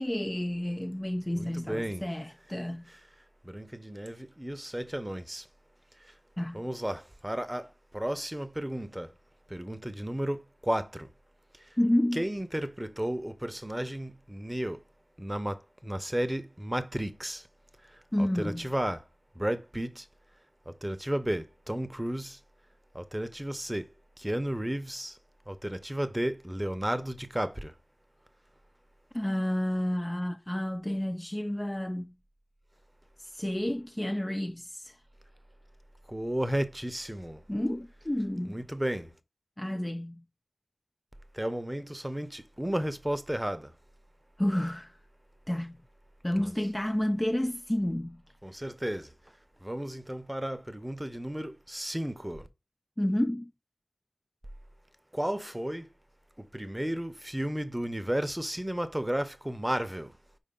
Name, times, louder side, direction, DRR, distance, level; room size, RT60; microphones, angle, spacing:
voice 1, 0.0-2.9 6.4-6.6 11.8-12.2 18.1-18.7 29.1-32.1 33.2-35.0 37.5-38.6 39.6-40.2 44.4-44.9 45.5-45.8 46.2-48.2 53.0-53.5, left 1 dB, 15° left, 0.3 m, -30 dB
voice 2, 1.3-2.1 3.4-5.4 6.5-7.7 7.9-9.1 9.5-11.1 12.1-14.8 15.2-17.4 18.2-19.0 19.4-20.0 20.7-22.4 22.9-23.9 24.2-25.2 25.5-27.7 36.1-37.4 38.4-39.1 41.3-43.7 46.3-46.5 48.4-49.1 49.6-52.5 55.1-55.9 56.5-60.1, right 1 dB, 10° right, 0.7 m, -33 dB
5.5 x 4.7 x 3.7 m
wide cardioid pair, 80°, 0 cm